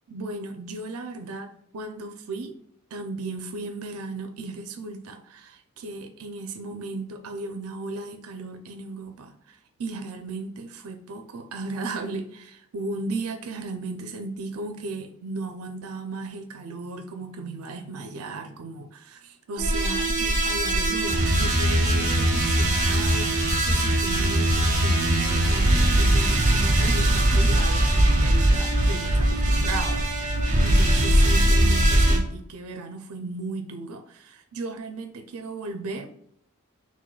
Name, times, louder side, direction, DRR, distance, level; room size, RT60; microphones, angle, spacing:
voice 1, 0.1-2.5 2.9-30.3 30.6-36.1, right 3 dB, 90° right, 6 dB, 0.5 m, -35 dB
sound 1, 19.6-32.2, right 1 dB, 35° right, 1.1 m, -21 dB
5.0 x 3.5 x 2.3 m, 0.71 s
head